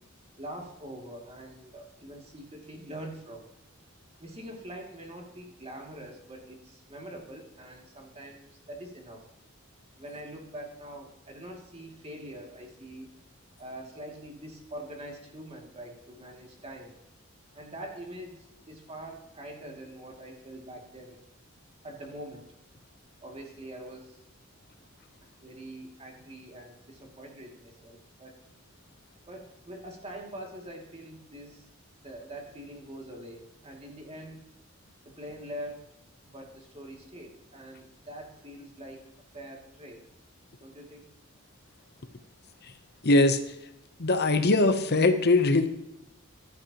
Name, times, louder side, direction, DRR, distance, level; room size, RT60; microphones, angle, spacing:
voice 1, 0.4-3.5 4.2-9.2 10.0-13.1 13.6-16.9 17.5-21.2 21.8-22.4 23.2-24.2 25.4-28.3 29.3-31.7 32.0-34.5 35.0-35.8 36.3-39.0 39.3-40.0 40.6-41.0, right 1 dB, 30° right, 1 dB, 2.5 m, -44 dB
voice 2, 43.0-43.5 44.0-45.7, left 2 dB, 50° left, 9 dB, 0.8 m, -21 dB
15.0 x 11.5 x 3.0 m, 0.91 s
head